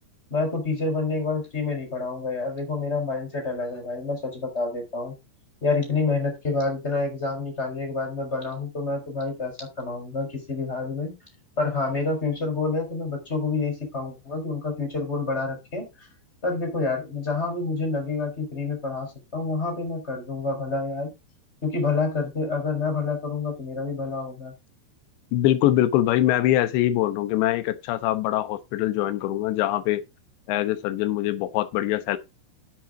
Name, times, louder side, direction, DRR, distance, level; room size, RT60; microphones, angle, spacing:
voice 1, 0.3-5.1 5.6-11.2 11.6-16.1 16.4-21.1 21.6-24.5, left 3 dB, 15° left, 4.2 m, -28 dB
voice 2, 25.3-30.0 30.5-32.2, left 13 dB, 75° left, 3.0 m, -23 dB
10.5 x 7.6 x 3.8 m
omnidirectional pair, 5.5 m